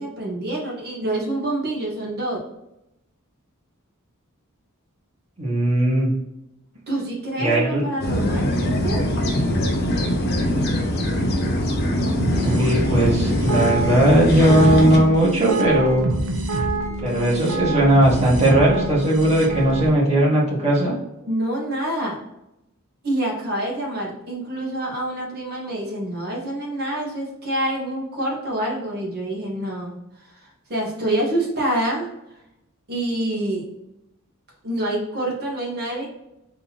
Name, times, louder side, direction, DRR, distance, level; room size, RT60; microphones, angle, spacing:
voice 1, 0.0-2.4 6.9-9.1 21.2-22.2 23.0-29.9 30.7-32.1 32.9-33.6 34.6-36.1, right 1 dB, 50° right, -2 dB, 1.5 m, -26 dB
voice 2, 5.4-6.1 7.4-7.8 12.4-16.1 17.0-20.9, right 1 dB, 30° right, -5 dB, 1.6 m, -18 dB
sound 1, 8.0-15.0, equal, 50° left, 1.0 m, -22 dB
sound 2, 12.2-19.9, right 2 dB, 70° right, 0.8 m, -26 dB
4.0 x 2.9 x 4.1 m, 0.87 s
head